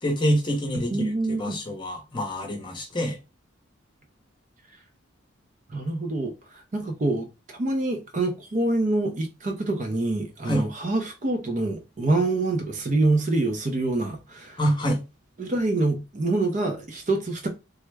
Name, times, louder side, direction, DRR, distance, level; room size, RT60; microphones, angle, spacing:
voice 1, 0.0-1.1 1.4-3.2 10.5-10.7 14.6-15.0, equal, 20° left, 0.7 m, -26 dB
voice 2, 0.9-1.6 5.7-14.6 15.4-17.5, right 2 dB, 35° right, 0.5 m, -26 dB
3.4 x 2.0 x 3.3 m
head